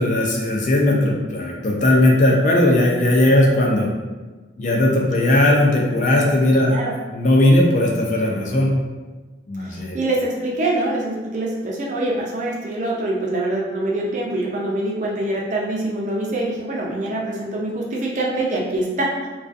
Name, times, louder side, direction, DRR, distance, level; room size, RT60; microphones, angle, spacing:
voice 1, 0.0-3.9 4.6-6.8 7.1-8.7 9.5-10.0, left 1 dB, 45° left, -2 dB, 0.4 m, -17 dB
voice 2, 6.6-7.0 9.6-19.3, right 1 dB, 45° right, -3 dB, 0.5 m, -24 dB
2.4 x 2.3 x 2.5 m, 1.3 s
head